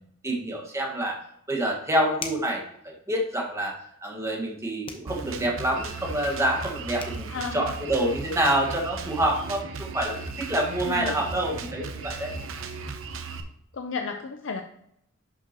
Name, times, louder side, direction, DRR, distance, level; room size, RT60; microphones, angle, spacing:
voice 1, 0.2-1.2 1.5-3.7 4.0-12.3, right 1 dB, 15° right, 0 dB, 1.6 m, -27 dB
sound 1, 2.2-2.6 4.8-5.1 6.7-6.8 7.0-7.2, left 4 dB, 25° left, 0.9 m, -37 dB
Drum kit, 5.1-13.4, right 4 dB, 85° right, 0.8 m, -36 dB
voice 2, 7.3-7.7 10.8-11.2 13.7-14.6, left 5 dB, 65° left, 5 dB, 0.6 m, -33 dB
11.0 x 6.0 x 3.0 m, 0.73 s
head